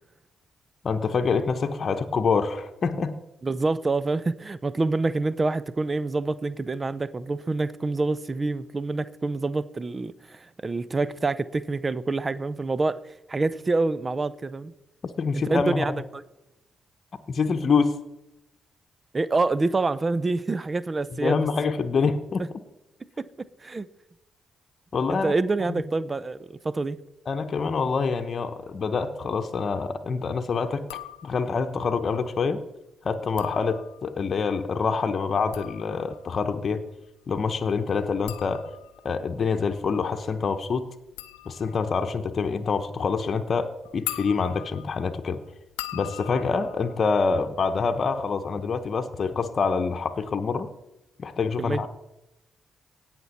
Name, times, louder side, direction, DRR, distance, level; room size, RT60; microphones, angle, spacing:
voice 1, 0.8-3.1 15.2-16.0 17.3-18.0 21.2-22.5 24.9-25.3 25.6-25.8 27.3-30.8 31.2-32.6 33.0-36.8 37.3-38.6 39.0-40.9 41.5-45.4 45.9-50.7 51.2-51.9, left 5 dB, 50° left, 0.9 m, -26 dB
voice 2, 3.4-13.0 13.3-14.7 15.3-16.2 19.1-21.4 23.2-23.3 23.6-23.9 25.1-27.0 51.6-51.9, right 3 dB, 35° right, 0.6 m, -27 dB
sound 1, 30.9-31.6 33.2-34.3 35.2-48.0 48.2-48.8, left 18 dB, 85° left, 0.5 m, -42 dB
17.5 x 6.1 x 4.2 m
hypercardioid pair, 40°, 0 cm